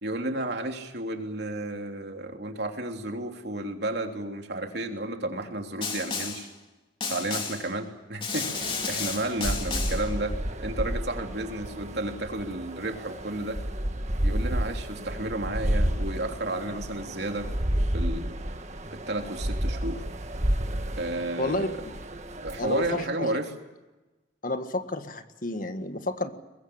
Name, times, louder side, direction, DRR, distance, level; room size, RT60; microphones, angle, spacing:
voice 1, 0.0-6.5 7.0-10.3 10.6-13.6 14.2-17.5 17.9-18.3 19.1-20.0 21.0-21.8 22.4-23.5, right 1 dB, 60° right, 3 dB, 3.3 m, -32 dB
Snare drum, 5.8-6.5 7.0-7.7 8.2-10.1, left 5 dB, 25° left, 2.9 m, -32 dB
sound 1, 8.5-23.1, right 1 dB, 35° right, 1.8 m, -31 dB
voice 2, 21.4-21.8 22.6-23.3 24.4-26.3, left 2 dB, 45° left, 8 dB, 1.7 m, -31 dB
23.0 x 21.0 x 8.8 m, 1.1 s
head